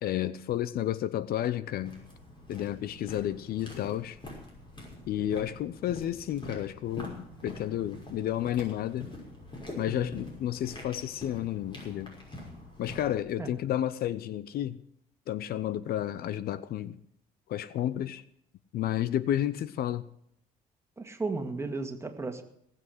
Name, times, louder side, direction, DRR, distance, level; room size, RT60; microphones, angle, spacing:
voice 1, 0.0-2.0 2.5-4.2 5.1-9.1 9.8-12.1 12.8-14.8 15.3-17.0 17.5-18.2 18.7-20.0, left 11 dB, 65° left, 0.7 m, -31 dB
sound 1, 1.7-13.2, left 1 dB, 30° left, 5.9 m, -45 dB
voice 2, 21.0-22.4, right 3 dB, 15° right, 2.1 m, -35 dB
18.5 x 7.6 x 7.9 m
cardioid pair, 110°, 17 cm